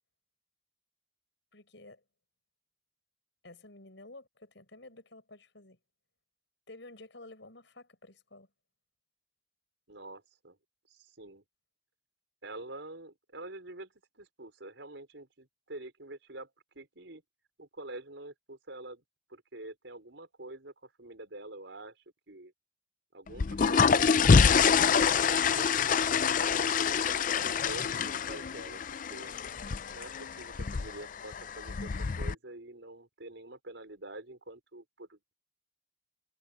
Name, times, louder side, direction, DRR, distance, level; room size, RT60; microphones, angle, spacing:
voice 1, 1.5-2.0 3.4-5.8 6.7-8.5, left 2 dB, 75° left, 5.5 m, -51 dB
voice 2, 9.9-10.6 10.9-11.4 12.4-17.2 17.6-19.0 19.3-22.0 22.3-22.5 23.1-24.1 24.5-25.7 26.0-29.4 29.9-35.2, right 2 dB, 80° right, 4.7 m, -46 dB
sound 1, 23.3-32.3, left 6 dB, 45° left, 0.4 m, -26 dB
head